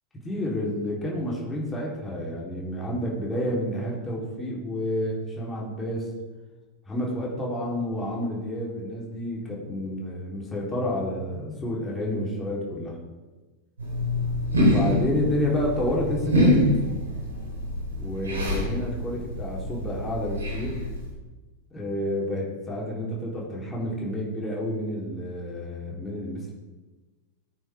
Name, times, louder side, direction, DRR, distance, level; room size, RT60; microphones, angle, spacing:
voice 1, 0.2-6.1 6.9-13.0 14.5-16.6 18.0-20.8 21.7-26.5, left 1 dB, 15° left, -4 dB, 3.5 m, -29 dB
sound 1, 13.8-21.1, left 1 dB, 75° right, 3.7 m, -26 dB
18.5 x 9.1 x 3.6 m, 1.3 s
figure-of-eight pair, 90°, 0 cm